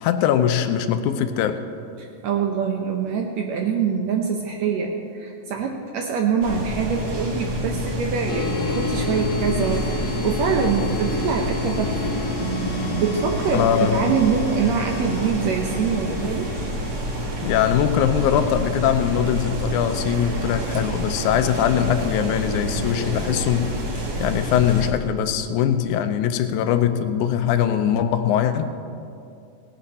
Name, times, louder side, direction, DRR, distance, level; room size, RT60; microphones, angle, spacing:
voice 1, 0.0-1.6 13.5-14.1 17.4-23.7 24.2-28.7, left 9 dB, 80° left, 9 dB, 2.1 m, -21 dB
voice 2, 2.0-12.1 12.4-16.5, right 6 dB, 70° right, 2 dB, 1.9 m, -24 dB
sound 1, 6.4-24.9, equal, 40° right, 1.6 m, -28 dB
sound 2, 8.3-18.0, left 4 dB, 65° left, 1.7 m, -32 dB
18.0 x 11.0 x 4.2 m, 2.5 s
omnidirectional pair, 3.5 m